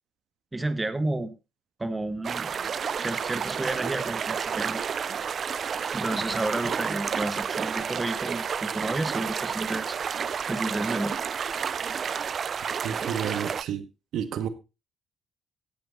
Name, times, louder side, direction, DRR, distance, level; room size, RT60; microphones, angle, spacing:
voice 1, 0.5-1.3 1.8-2.5 3.0-4.8 5.9-10.0 10.5-11.1, right 2 dB, 15° right, 1.7 m, -31 dB
sound 1, 2.2-13.6, right 7 dB, 50° right, 0.5 m, -30 dB
voice 2, 12.8-13.8 14.1-14.5, right 9 dB, 80° right, 1.6 m, -30 dB
15.5 x 8.4 x 3.9 m
cardioid pair, 90°, 0 cm